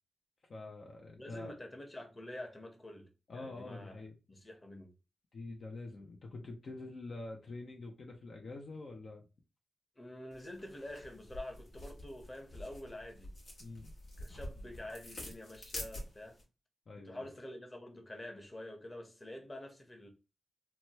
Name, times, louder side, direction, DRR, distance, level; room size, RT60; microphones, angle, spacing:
voice 1, 0.5-1.5 3.3-4.2 5.3-9.3 13.6-13.9 16.9-17.3, left 2 dB, 65° left, 0.6 m, -46 dB
voice 2, 1.2-3.9 4.3-4.9 10.0-13.3 14.2-16.4 17.0-20.1, left 1 dB, 30° left, 1.0 m, -47 dB
sound 1, 10.3-16.4, left 1 dB, 85° left, 1.2 m, -48 dB
2.9 x 2.3 x 3.0 m
cardioid pair, 60°, 0 cm